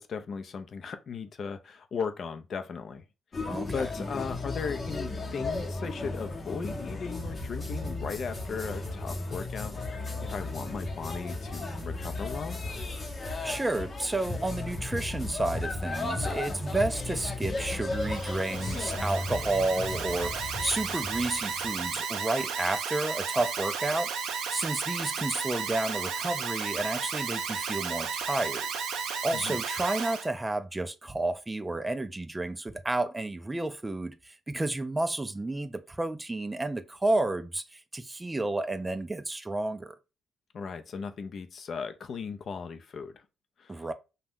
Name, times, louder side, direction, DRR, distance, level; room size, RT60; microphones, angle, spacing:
voice 1, 0.0-3.0 3.4-9.7 10.2-12.6 29.3-29.6 40.5-43.2 43.6-43.9, left 5 dB, 55° left, 0.4 m, -37 dB
sound 1, 3.3-21.9, left 2 dB, 35° left, 0.7 m, -35 dB
voice 2, 3.5-3.9 13.2-28.7 29.0-40.0 43.7-43.9, right 2 dB, 15° right, 0.3 m, -31 dB
Alarm, 17.9-30.3, right 6 dB, 90° right, 0.5 m, -34 dB
2.6 x 2.2 x 3.5 m
cardioid pair, 90°, 0 cm